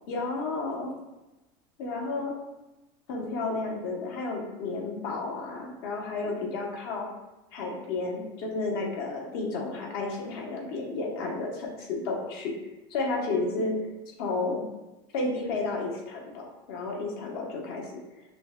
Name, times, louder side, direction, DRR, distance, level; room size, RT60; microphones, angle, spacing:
voice 1, 0.1-0.9 1.8-2.3 3.1-7.1 7.5-12.5 12.9-13.7 14.2-14.6 15.1-18.2, left 3 dB, 60° left, 0 dB, 0.8 m, -32 dB
5.9 x 2.1 x 2.2 m, 1.0 s
supercardioid pair, 165°, 13 cm